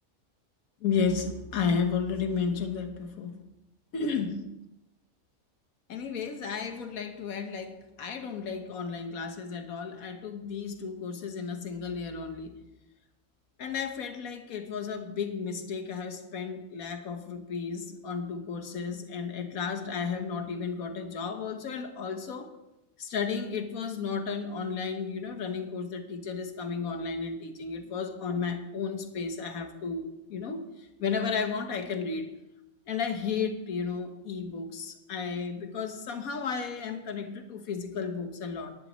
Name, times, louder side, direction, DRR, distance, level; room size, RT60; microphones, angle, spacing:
voice 1, 0.8-3.4 3.9-4.5 5.9-12.6 13.6-22.5 23.0-30.6 31.0-32.4 32.9-38.8, left 5 dB, 80° left, 6 dB, 1.6 m, -33 dB
19.5 x 11.0 x 3.1 m, 0.91 s
omnidirectional pair, 1.5 m